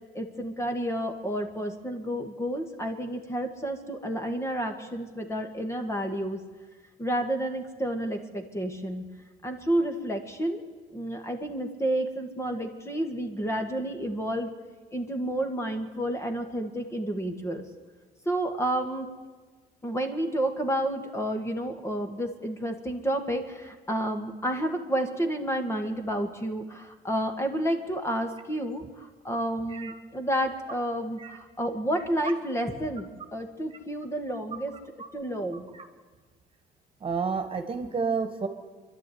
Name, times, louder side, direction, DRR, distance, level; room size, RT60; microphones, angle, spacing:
voice 1, 0.1-6.4 7.0-9.0 9.4-10.6 10.9-14.5 14.9-17.6 18.3-19.1 19.8-34.8 35.1-35.7, right 1 dB, 15° left, 5 dB, 2.1 m, -30 dB
voice 2, 37.0-38.5, right 5 dB, 30° right, 7 dB, 2.0 m, -30 dB
25.0 x 12.0 x 9.6 m, 1.4 s
cardioid pair, 110°, 17 cm